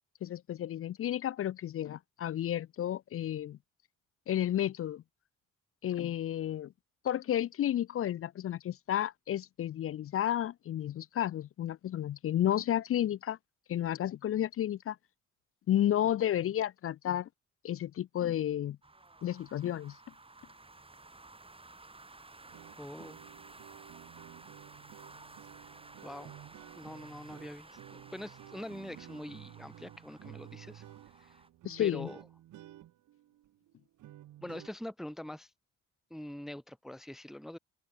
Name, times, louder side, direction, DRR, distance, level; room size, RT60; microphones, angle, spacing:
voice 1, 0.2-3.6 4.3-5.0 5.8-6.7 7.0-13.4 13.7-15.0 15.7-17.3 17.6-18.8 19.2-20.0 31.6-32.1, left 11 dB, 50° left, 0.5 m, -32 dB
sound 1, 18.8-31.5, right 2 dB, 20° right, 5.7 m, -55 dB
sound 2, 22.5-34.7, right 13 dB, 80° right, 4.2 m, -53 dB
voice 2, 22.8-23.2 26.0-26.4 26.7-30.8 31.2-31.3 31.8-32.2 34.4-35.5 36.1-37.6, left 1 dB, ahead, 0.5 m, -44 dB
open air
cardioid pair, 90°, 30 cm